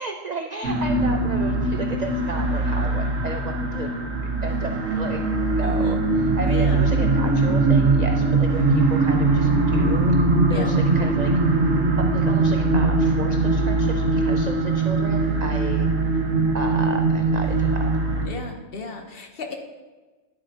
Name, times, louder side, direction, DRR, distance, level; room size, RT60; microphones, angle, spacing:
voice 1, 0.0-3.9 4.4-5.2 5.5-10.2 10.5-11.3 12.0-16.2 16.5-17.9, right 4 dB, 60° right, 4 dB, 0.4 m, -33 dB
sound 1, 0.6-18.3, right 2 dB, 80° right, 1.7 m, -21 dB
voice 2, 5.6-6.0 6.4-6.8 10.5-10.7 18.3-19.6, left 3 dB, 50° left, 3 dB, 1.0 m, -34 dB
11.0 x 7.6 x 2.8 m, 1.3 s
omnidirectional pair, 1.3 m